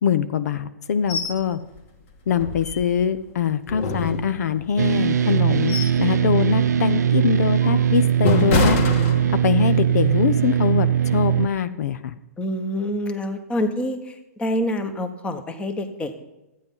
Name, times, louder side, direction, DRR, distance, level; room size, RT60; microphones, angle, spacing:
voice 1, 0.0-1.6 2.3-8.8 9.4-12.2, left 7 dB, 75° left, 12 dB, 0.7 m, -23 dB
sound 1, 1.1-1.4 1.8-1.9 2.3-3.2 3.7-4.7 5.3-6.1 6.5-6.7 7.3-9.7 10.1-10.3, left 3 dB, 50° left, 2.2 m, -26 dB
sound 2, 4.8-11.5, right 9 dB, 90° right, 0.5 m, -20 dB
voice 2, 12.4-16.2, left 1 dB, 10° left, 8 dB, 1.1 m, -27 dB
12.5 x 9.3 x 5.5 m, 0.97 s
hypercardioid pair, 140°, 9 cm